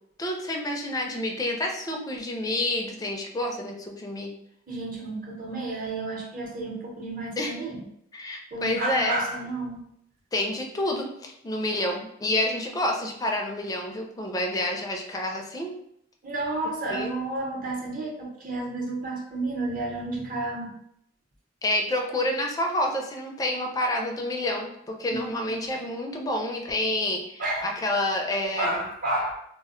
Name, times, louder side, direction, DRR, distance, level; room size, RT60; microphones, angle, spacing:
voice 1, 0.2-4.3 7.4-7.5 8.1-9.2 10.3-15.7 16.9-17.1 21.6-28.7, left 1 dB, 20° left, 1 dB, 0.4 m, -28 dB
voice 2, 4.7-7.8 8.5-9.8 16.2-20.7 25.1-25.3 27.4-27.7 28.6-29.3, right 2 dB, 50° right, -2 dB, 0.7 m, -31 dB
2.1 x 2.0 x 3.6 m, 0.72 s
head